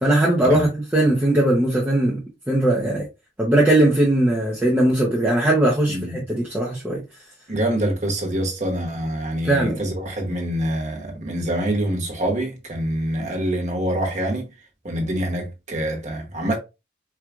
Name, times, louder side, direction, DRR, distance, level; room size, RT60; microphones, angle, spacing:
voice 1, 0.0-2.2 2.5-3.1 3.4-7.0 9.4-9.8, right 1 dB, 10° right, 0.7 m, -19 dB
voice 2, 5.9-6.2 7.5-14.5 14.8-16.6, right 1 dB, 40° right, 0.9 m, -25 dB
4.5 x 2.4 x 2.4 m
head